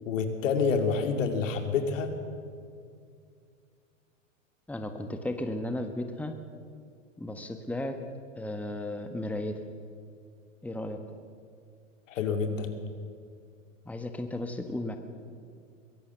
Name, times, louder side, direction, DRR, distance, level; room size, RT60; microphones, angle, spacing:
voice 1, 0.1-2.1 12.1-12.7, left 5 dB, 70° left, 6 dB, 2.7 m, -28 dB
voice 2, 4.7-6.3 7.2-7.9 8.4-9.6 10.6-11.0 13.8-15.0, left 1 dB, 5° left, 6 dB, 1.4 m, -34 dB
22.5 x 16.5 x 7.0 m, 2.2 s
hypercardioid pair, 105°, 39 cm